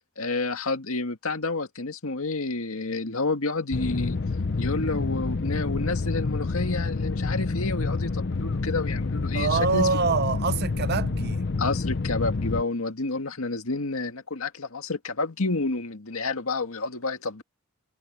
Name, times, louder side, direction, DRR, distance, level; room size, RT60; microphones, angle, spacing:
voice 1, 0.2-4.2 4.6-9.9 11.6-17.4, left 3 dB, 80° left, 2.0 m, -29 dB
sound 1, 3.7-12.6, left 3 dB, 55° left, 0.6 m, -28 dB
voice 2, 9.3-11.4, right 4 dB, 50° right, 0.7 m, -25 dB
head